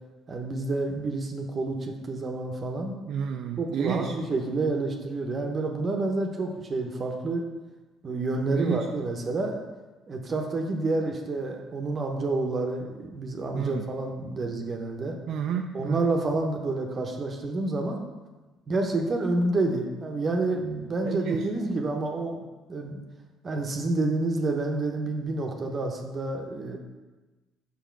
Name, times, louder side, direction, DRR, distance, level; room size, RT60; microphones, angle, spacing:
voice 1, 0.3-3.0 3.6-7.4 8.0-9.6 10.1-15.1 15.7-18.0 18.7-23.0 23.4-26.8, right 2 dB, 40° right, 2 dB, 0.8 m, -29 dB
voice 2, 3.1-4.1 8.5-8.9 13.5-13.9 15.3-16.1 21.0-21.5, right 7 dB, 65° right, 4 dB, 0.4 m, -31 dB
5.1 x 5.0 x 4.5 m, 1.2 s
supercardioid pair, 75°, 0 cm